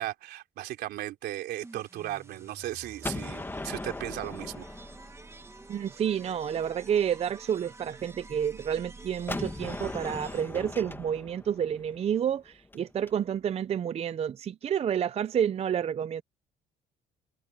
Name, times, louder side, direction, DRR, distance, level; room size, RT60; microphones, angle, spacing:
voice 1, 0.0-4.7, right 14 dB, 75° right, 3.5 m, -36 dB
sound 1, 1.6-10.8, right 3 dB, 15° right, 1.7 m, -49 dB
Gunshot gunfire, 3.0-5.9 9.3-13.1, left 2 dB, 10° left, 1.5 m, -39 dB
voice 2, 5.7-16.2, right 8 dB, 35° right, 0.5 m, -29 dB
open air
cardioid pair, 110°, 17 cm